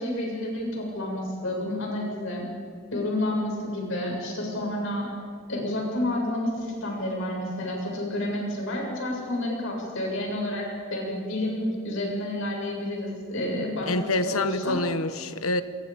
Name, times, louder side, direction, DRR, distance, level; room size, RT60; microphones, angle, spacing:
voice 1, 0.0-2.5 2.9-5.1 5.5-13.9 14.3-14.8, left 1 dB, 65° left, -1 dB, 7.6 m, -30 dB
voice 2, 13.9-15.6, left 2 dB, 85° left, 11 dB, 1.3 m, -26 dB
27.0 x 23.0 x 5.4 m, 2.2 s
head